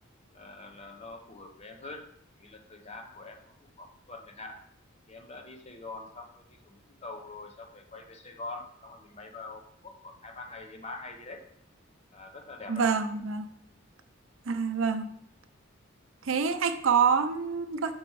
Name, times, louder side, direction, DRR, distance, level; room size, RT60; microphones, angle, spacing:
voice 1, 0.3-2.1 2.4-4.6 5.1-11.4 12.1-13.0, left 3 dB, 30° left, 4 dB, 0.8 m, -44 dB
voice 2, 12.7-13.5 14.5-15.1 16.2-17.9, right 6 dB, 75° right, 8 dB, 0.6 m, -26 dB
6.0 x 4.5 x 4.7 m, 0.74 s
head